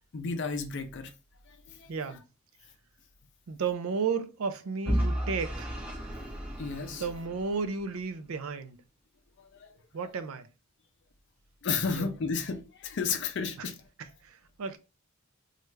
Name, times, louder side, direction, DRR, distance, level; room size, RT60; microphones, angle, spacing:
voice 1, 0.1-1.1 1.5-1.9 6.6-7.0 9.4-9.7 11.6-13.7, left 5 dB, 55° left, 0.5 m, -32 dB
voice 2, 1.9-2.2 3.5-5.7 6.9-8.8 9.9-10.5 11.9-12.1 13.6-13.7 14.0-14.8, right 5 dB, 70° right, 0.4 m, -33 dB
Vehicle / Engine, 4.9-7.9, equal, 5° right, 0.6 m, -33 dB
3.2 x 2.4 x 3.2 m
head